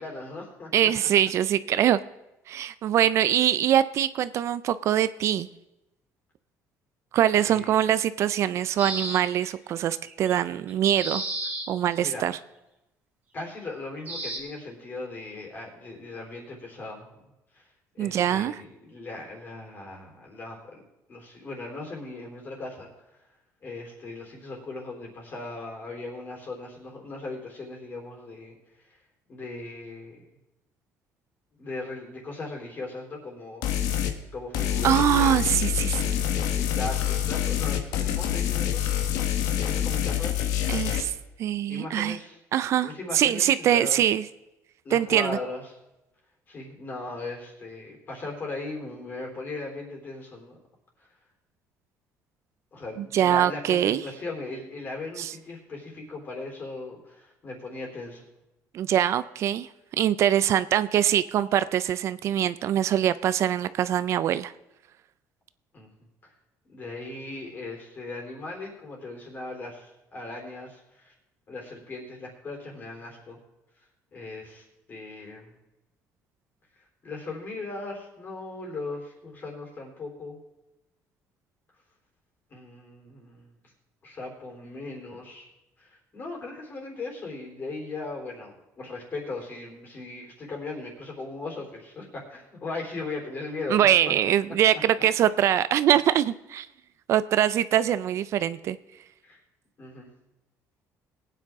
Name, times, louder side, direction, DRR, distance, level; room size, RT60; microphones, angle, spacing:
voice 1, 0.0-0.7 7.3-7.7 12.0-12.3 13.3-17.1 17.5-17.6 17.9-20.8 21.1-22.9 23.6-28.9 29.3-30.2 31.6-34.0 34.3-36.3 36.6-38.9 39.7-40.6 41.7-42.4 42.8-44.0 44.8-45.6 46.5-50.6 52.7-58.2 65.7-65.9 66.2-66.3 66.7-71.1 71.5-73.4 74.1-75.5 77.0-80.4 82.5-83.5 84.0-85.5 85.8-93.9 94.7-94.8 99.2-99.4 99.8-100.1, left 3 dB, 35° left, 0 dB, 3.7 m, -38 dB
voice 2, 0.7-2.0 2.5-5.5 7.1-11.2 11.7-12.4 18.0-18.6 34.8-36.1 40.7-41.1 41.4-42.2 42.5-44.3 44.9-45.4 53.0-54.0 55.2-55.3 58.7-59.7 60.0-64.5 93.7-96.7 97.1-98.8, right 10 dB, 55° right, 15 dB, 0.4 m, -23 dB
sound 1, 8.8-9.5 10.1-10.3 10.7-11.7 14.1-14.4, right 2 dB, 30° right, 3.0 m, -32 dB
sound 2, 33.6-34.1 34.5-41.0, left 11 dB, 85° left, 1.3 m, -26 dB
20.0 x 9.2 x 3.6 m, 0.95 s
cardioid pair, 140°, 6 cm